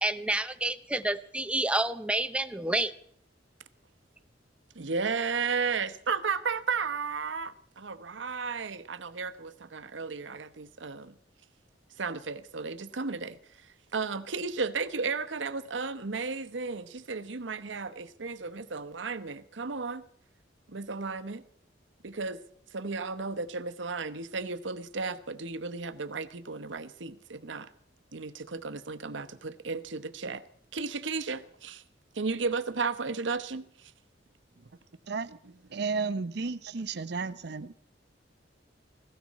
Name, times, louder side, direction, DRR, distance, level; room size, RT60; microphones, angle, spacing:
voice 1, 0.0-2.9, right 2 dB, 5° right, 0.7 m, -29 dB
voice 2, 4.7-11.1 12.0-13.4 13.9-20.0 20.7-21.4 22.0-22.4 22.7-27.7 28.1-30.4 30.7-31.8 32.1-33.9, right 4 dB, 85° right, 0.9 m, -34 dB
voice 3, 35.1-35.4 35.7-37.7, right 4 dB, 65° right, 0.7 m, -33 dB
18.0 x 16.5 x 4.2 m
head